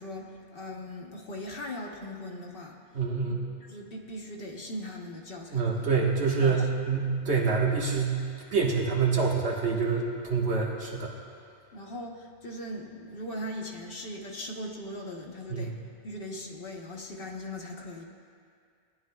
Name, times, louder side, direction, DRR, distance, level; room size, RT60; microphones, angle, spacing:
voice 1, 0.0-2.8 3.2-3.4 3.7-5.9 6.4-6.6 11.7-15.8 16.0-18.0, left 1 dB, 60° left, 0 dB, 1.1 m, -39 dB
voice 2, 2.9-3.4 5.5-8.2 8.5-11.1 15.5-15.8, right 5 dB, 80° right, -3 dB, 1.7 m, -26 dB
17.0 x 10.0 x 2.3 m, 2.2 s
omnidirectional pair, 1.1 m